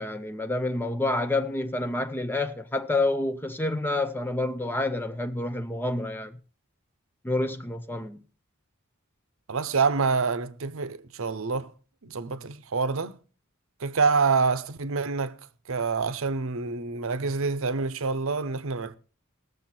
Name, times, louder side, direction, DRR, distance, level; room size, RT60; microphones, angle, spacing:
voice 1, 0.0-6.4 7.2-8.2, left 2 dB, 10° left, 0.5 m, -28 dB
voice 2, 9.5-11.7 12.0-13.2 13.8-15.4 15.7-19.0, right 4 dB, 65° right, 0.7 m, -27 dB
19.0 x 6.9 x 4.3 m
head